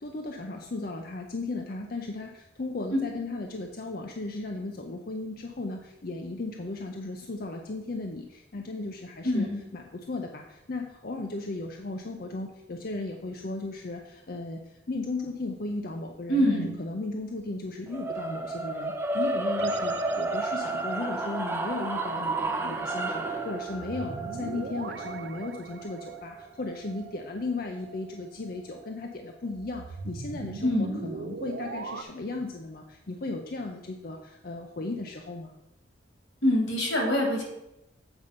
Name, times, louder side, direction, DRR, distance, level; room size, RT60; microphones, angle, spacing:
voice 1, 0.0-9.5 9.7-35.5, left 2 dB, 50° left, 2 dB, 0.6 m, -36 dB
voice 2, 9.2-9.6 16.3-16.8 30.6-31.0 36.4-37.4, left 1 dB, 85° left, 0 dB, 2.7 m, -25 dB
sound 1, 17.9-28.1, right 2 dB, 10° right, 0.6 m, -32 dB
sound 2, 19.6-20.9 23.6-26.3 29.5-32.0, right 3 dB, 65° right, 0.5 m, -40 dB
8.0 x 5.4 x 5.1 m, 0.89 s
head